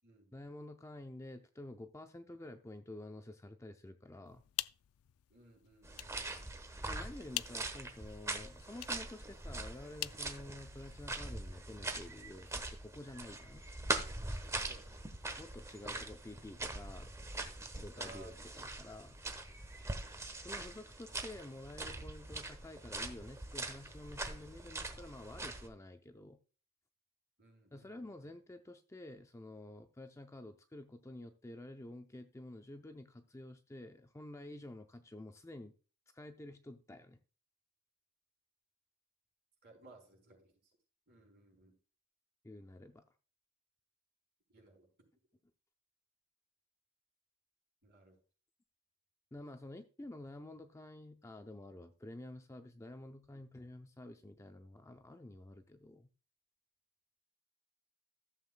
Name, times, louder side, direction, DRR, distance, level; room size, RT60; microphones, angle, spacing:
voice 1, 0.3-4.4 6.9-13.6 15.4-17.1 17.7-19.2 20.4-26.4 27.7-35.7 36.1-37.2 42.4-43.0 49.3-56.1, left 1 dB, 15° left, 7 dB, 0.5 m, -50 dB
sound 1, 4.3-11.1, left 16 dB, 75° left, 0.3 m, -47 dB
voice 2, 5.3-6.4 14.6-15.0 17.8-18.5 27.4-28.3 39.6-40.5 41.1-41.8 44.5-44.9 47.8-48.2, right 2 dB, 50° right, 1 dB, 4.6 m, -60 dB
sound 2, 5.8-25.7, right 2 dB, 15° right, 1.0 m, -43 dB
15.0 x 7.5 x 2.2 m, 0.36 s
head